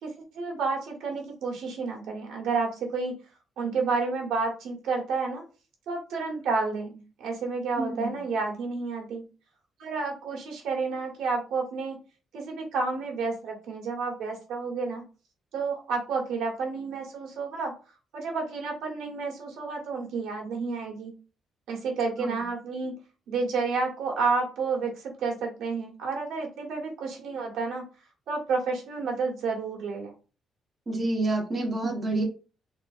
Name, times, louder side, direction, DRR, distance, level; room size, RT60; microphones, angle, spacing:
voice 1, 0.0-3.1 3.6-5.4 5.9-9.3 9.8-12.0 12.3-15.1 15.5-17.7 18.1-21.1 21.7-22.9 23.3-27.8 28.3-30.1, right 4 dB, 90° right, -1 dB, 1.3 m, -30 dB
voice 2, 7.8-8.1 22.2-22.3 30.9-32.2, right 2 dB, 20° right, -2 dB, 1.1 m, -28 dB
3.9 x 3.0 x 2.5 m, 0.34 s
cardioid pair, 165°, 0 cm